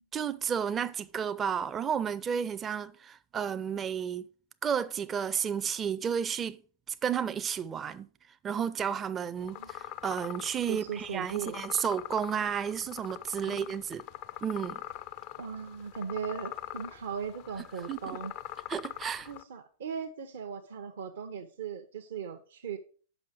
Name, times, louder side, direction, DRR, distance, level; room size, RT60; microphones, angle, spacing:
voice 1, 0.1-4.3 4.6-6.6 7.0-8.1 8.4-14.1 14.4-14.8 17.9-18.2 18.7-19.3, right 7 dB, 25° right, 0.5 m, -32 dB
sound 1, 9.4-19.4, left 13 dB, 45° left, 0.5 m, -43 dB
voice 2, 10.7-11.6 13.5-13.8 15.4-18.3 19.3-22.8, right 7 dB, 65° right, 0.8 m, -38 dB
6.3 x 5.6 x 6.0 m
figure-of-eight pair, 100°, 0 cm